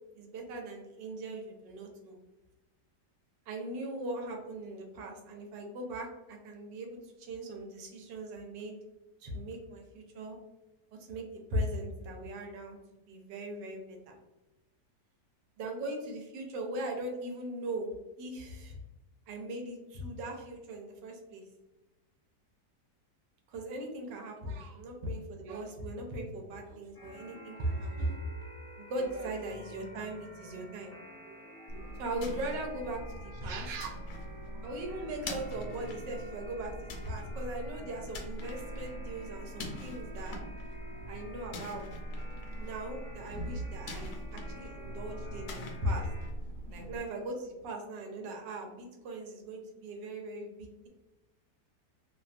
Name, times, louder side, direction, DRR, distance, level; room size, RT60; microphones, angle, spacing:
voice 1, 0.1-2.2 3.5-8.7 9.2-10.4 11.1-14.1 15.6-18.8 19.3-21.4 23.5-28.1 28.8-30.9 32.0-33.7 34.6-40.4 41.1-41.8 42.6-46.1 46.7-50.9, right 1 dB, 90° right, 2 dB, 1.3 m, -39 dB
voice 2, 24.4-24.8 25.4-25.7 26.7-26.8 27.6-28.2 29.0-29.3 30.4-30.5 30.9-31.0 31.3-32.0 33.4-34.0, right 2 dB, 70° right, 0 dB, 0.9 m, -38 dB
sound 1, 26.9-46.3, left 1 dB, 5° left, 0.6 m, -50 dB
sound 2, 31.7-47.0, equal, 75° left, 1.0 m, -42 dB
2.9 x 2.2 x 2.4 m, 1.0 s
omnidirectional pair, 1.9 m